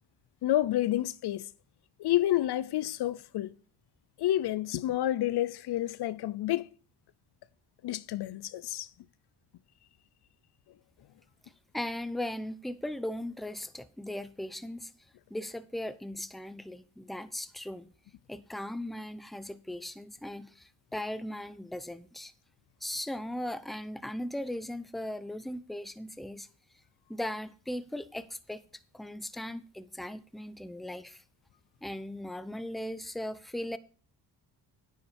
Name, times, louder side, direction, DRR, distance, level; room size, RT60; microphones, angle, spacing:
voice 1, 0.4-1.5 2.0-3.5 4.2-6.7 7.8-8.9, left 14 dB, 70° left, 0.6 m, -29 dB
voice 2, 11.7-14.9 15.3-17.9 18.3-22.3 22.8-26.5 27.1-28.6 28.9-31.2 31.8-33.8, left 1 dB, ahead, 0.7 m, -38 dB
9.9 x 8.6 x 4.3 m
cardioid pair, 85°, 41 cm